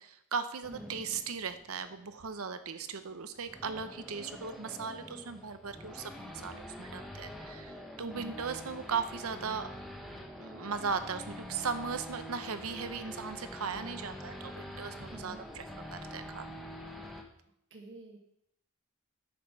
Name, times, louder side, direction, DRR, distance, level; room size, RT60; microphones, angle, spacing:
voice 1, 0.0-9.7 10.4-15.6 15.9-16.4, right 5 dB, 80° right, 10 dB, 0.7 m, -38 dB
Race car auto racing / Idling / Accelerating revving vroom, 0.6-17.2, left 1 dB, ahead, 0.9 m, -46 dB
voice 2, 0.7-1.0 8.0-8.4 15.1-15.4 17.7-18.2, right 2 dB, 55° right, 1 dB, 1.3 m, -47 dB
8.6 x 5.2 x 5.8 m, 0.74 s
head